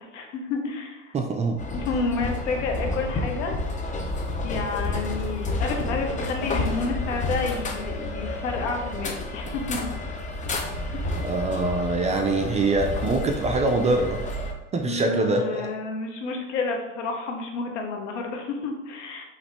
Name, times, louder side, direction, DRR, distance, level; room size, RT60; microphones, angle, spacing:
voice 1, 0.0-1.1 1.5-3.5 4.4-9.9 10.9-11.1 14.8-19.2, left 4 dB, 70° left, 3 dB, 1.0 m, -30 dB
voice 2, 1.1-1.6 11.2-14.2 14.7-15.7, right 2 dB, 20° right, 3 dB, 0.4 m, -24 dB
sound 1, 1.6-14.5, left 2 dB, 20° left, 0.7 m, -30 dB
4.9 x 3.1 x 3.3 m, 0.98 s
hypercardioid pair, 90°, 37 cm